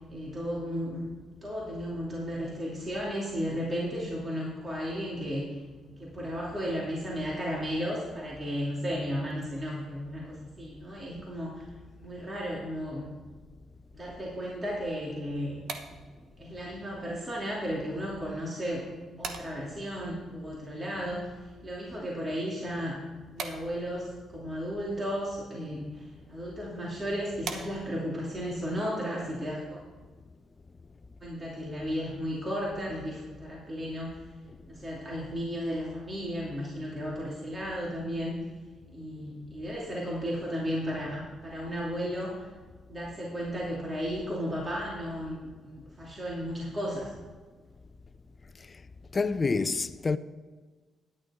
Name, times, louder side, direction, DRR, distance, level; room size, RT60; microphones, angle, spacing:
voice 1, 0.1-1.0 1.4-5.5 6.0-11.7 12.0-13.1 13.9-15.6 15.9-16.0 16.4-18.9 19.2-21.3 21.6-23.0 23.3-29.8 31.2-34.2 34.6-38.4 38.9-42.5 42.9-47.1, equal, 30° right, 2.7 m, -34 dB
sound 1, 15.3-28.2, right 5 dB, 70° right, 1.1 m, -47 dB
voice 2, 49.1-50.2, left 4 dB, 30° left, 0.5 m, -27 dB
10.5 x 9.7 x 4.3 m
cardioid pair, 90°, 0 cm